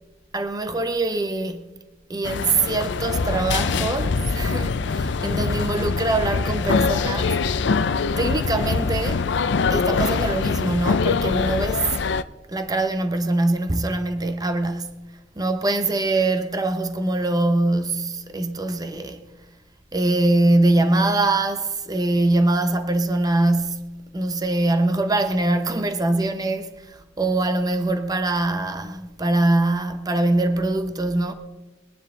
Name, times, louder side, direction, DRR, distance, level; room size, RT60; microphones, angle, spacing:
voice 1, 0.3-1.7 2.1-7.4 8.2-9.3 9.7-11.9 12.5-19.3 19.9-31.3, right 2 dB, 20° right, 0.8 m, -23 dB
sound 1, 2.2-12.2, left 4 dB, 65° left, 0.5 m, -23 dB
sound 2, 3.0-9.9, left 2 dB, 5° left, 2.3 m, -39 dB
21.5 x 10.0 x 3.7 m
head